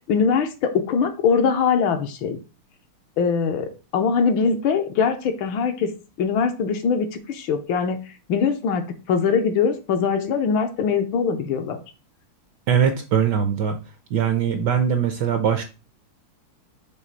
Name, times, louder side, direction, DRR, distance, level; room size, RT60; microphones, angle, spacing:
voice 1, 0.1-2.4 3.2-5.9 6.2-8.0 8.3-8.8 9.1-11.8, left 6 dB, 70° left, 6 dB, 1.5 m, -22 dB
voice 2, 12.7-13.8 14.1-15.6, right 8 dB, 70° right, 7 dB, 1.1 m, -21 dB
6.4 x 3.2 x 5.3 m, 0.31 s
omnidirectional pair, 2.4 m